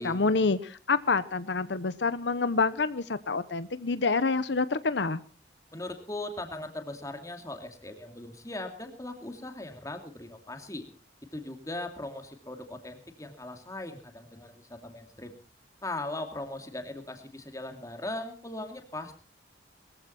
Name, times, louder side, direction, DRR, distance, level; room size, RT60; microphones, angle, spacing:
voice 1, 0.0-5.2, left 4 dB, 80° left, 14 dB, 0.9 m, -27 dB
voice 2, 5.7-10.8 11.3-15.4 15.8-19.2, left 2 dB, 20° left, 5 dB, 2.5 m, -39 dB
22.0 x 14.5 x 4.3 m, 0.39 s
head